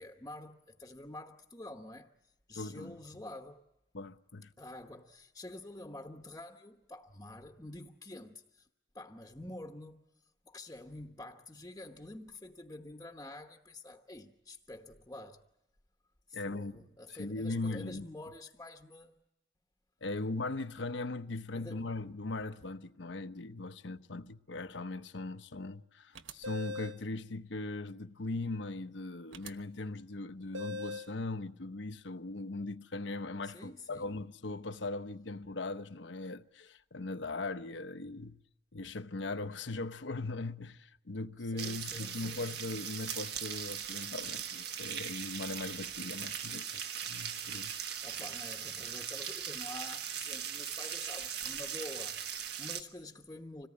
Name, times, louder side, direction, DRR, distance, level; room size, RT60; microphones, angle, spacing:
voice 1, 0.0-2.1 2.5-3.6 4.6-8.7 8.9-10.0 10.4-15.4 16.3-19.2 21.5-21.9 33.4-34.2 41.4-42.4 48.0-53.7, left 1 dB, 15° left, 1.0 m, -48 dB
voice 2, 2.6-3.0 3.9-4.5 16.3-18.1 20.0-38.4 38.7-47.8, left 2 dB, 70° left, 0.9 m, -39 dB
sound 1, 26.2-27.0 29.3-29.5 30.5-31.2, left 2 dB, 80° right, 1.1 m, -40 dB
sound 2, 41.6-52.8, right 8 dB, 55° right, 1.5 m, -39 dB
26.0 x 18.5 x 9.8 m
head